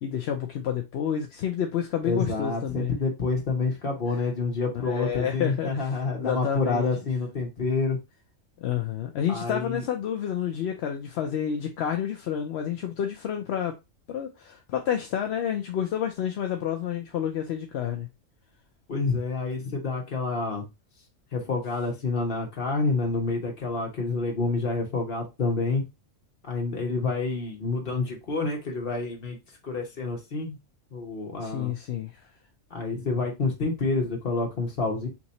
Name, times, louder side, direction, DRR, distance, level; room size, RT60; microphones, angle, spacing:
voice 1, 0.0-3.0 4.1-4.2 4.7-6.9 8.6-13.7 14.1-18.1 31.4-32.2, left 9 dB, 65° left, 0.8 m, -29 dB
voice 2, 2.0-8.0 9.3-9.8 18.9-20.7 21.3-25.8 26.4-29.4 29.6-30.6 30.9-31.7 32.7-35.1, left 3 dB, 45° left, 1.3 m, -28 dB
3.6 x 3.0 x 4.0 m
omnidirectional pair, 1.3 m